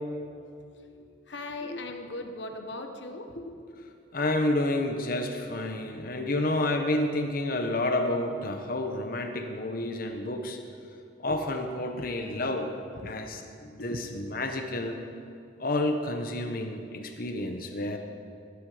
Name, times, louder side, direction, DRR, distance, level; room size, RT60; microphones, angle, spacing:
voice 1, 0.1-3.7 5.3-5.4 13.0-13.3 13.8-14.0, left 2 dB, 70° left, 5 dB, 1.3 m, -40 dB
voice 2, 3.8-10.6 11.2-12.7 13.1-15.0 15.6-18.0, left 1 dB, 50° left, 5 dB, 1.1 m, -30 dB
22.0 x 11.5 x 5.1 m, 2.5 s
head